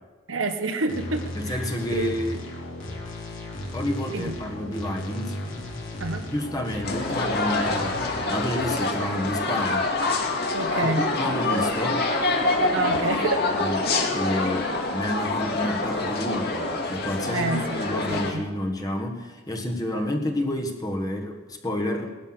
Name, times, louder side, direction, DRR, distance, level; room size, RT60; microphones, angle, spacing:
voice 1, 0.3-1.6 1.9-2.1 4.1-4.3 6.0-6.3 10.5-11.0 12.7-13.5 17.3-18.4, right 2 dB, 65° right, 7 dB, 1.2 m, -28 dB
sound 1, 0.9-8.6, left 1 dB, 65° left, 3.4 m, -35 dB
voice 2, 1.3-2.4 3.7-5.4 6.3-8.0 8.3-9.9 10.8-12.1 13.3-22.1, left 1 dB, 15° left, 3 dB, 1.5 m, -29 dB
sound 2, 6.8-18.3, left 2 dB, 50° left, 2.0 m, -26 dB
19.5 x 12.0 x 6.1 m, 1.3 s
head